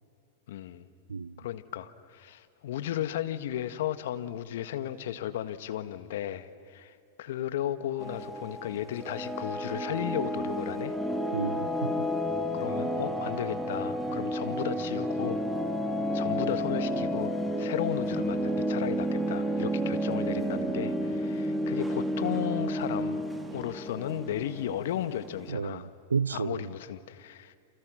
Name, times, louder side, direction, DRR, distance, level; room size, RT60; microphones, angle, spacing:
voice 1, 0.5-0.8 1.4-11.0 12.5-15.4 16.1-23.2 23.5-25.9 26.3-27.5, left 11 dB, 65° left, 1.4 m, -35 dB
voice 2, 1.1-1.4 11.3-12.1 25.5-26.7, right 5 dB, 90° right, 0.5 m, -32 dB
sound 1, 8.0-25.5, equal, 5° right, 2.2 m, -31 dB
29.0 x 28.0 x 6.3 m
hypercardioid pair, 100°, 0 cm